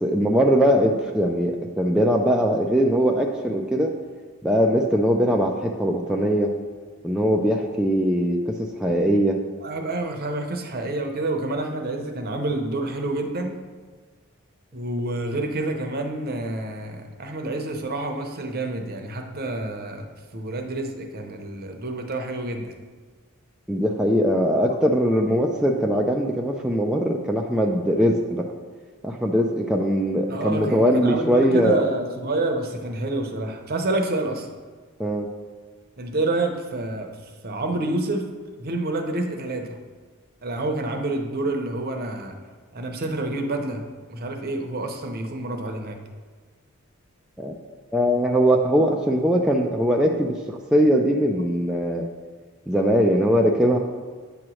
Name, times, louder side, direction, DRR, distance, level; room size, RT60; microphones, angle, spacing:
voice 1, 0.0-4.0 4.4-6.5 7.0-9.4 23.7-28.5 29.0-31.8 35.0-35.3 47.4-47.5 47.9-52.1 52.7-53.8, equal, 5° right, -1 dB, 0.3 m, -21 dB
voice 2, 9.6-13.6 14.7-20.1 20.3-22.8 30.3-34.5 36.0-38.2 38.6-39.8 40.4-42.3 42.7-43.8 44.1-46.0, right 2 dB, 45° right, 4 dB, 0.7 m, -28 dB
8.6 x 3.0 x 6.2 m, 1.5 s
head